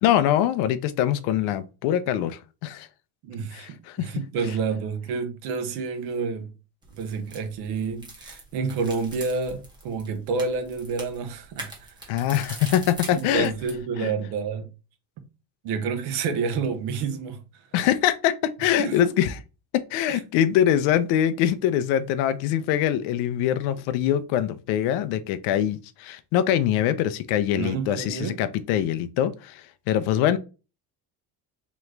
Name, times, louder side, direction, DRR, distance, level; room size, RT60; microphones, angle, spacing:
voice 1, 0.0-2.9 3.5-4.1 12.1-13.5 14.0-14.1 17.7-18.3 18.6-19.4 19.9-30.4, left 11 dB, 65° left, 0.5 m, -23 dB
voice 2, 3.2-6.5 6.9-12.2 13.1-14.7 15.6-17.4 18.8-19.1 20.1-20.2 27.5-28.4, right 5 dB, 60° right, 0.9 m, -29 dB
sound 1, 6.8-13.8, right 2 dB, 10° right, 0.8 m, -42 dB
3.7 x 3.0 x 3.3 m
cardioid pair, 170°, 44 cm